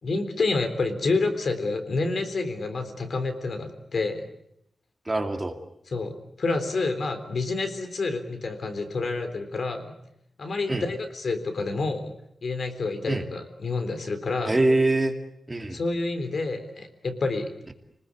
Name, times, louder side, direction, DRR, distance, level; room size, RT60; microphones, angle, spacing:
voice 1, 0.0-4.2 5.9-6.1 6.4-9.9 10.4-12.1 12.4-14.6 15.7-17.5, left 3 dB, 55° left, 8 dB, 3.6 m, -28 dB
voice 2, 5.1-5.6 10.7-10.9 13.0-13.3 14.4-15.1 15.5-15.8, right 2 dB, 20° right, 4 dB, 2.3 m, -24 dB
29.5 x 20.5 x 8.5 m, 0.77 s
wide cardioid pair, 155°, 0 cm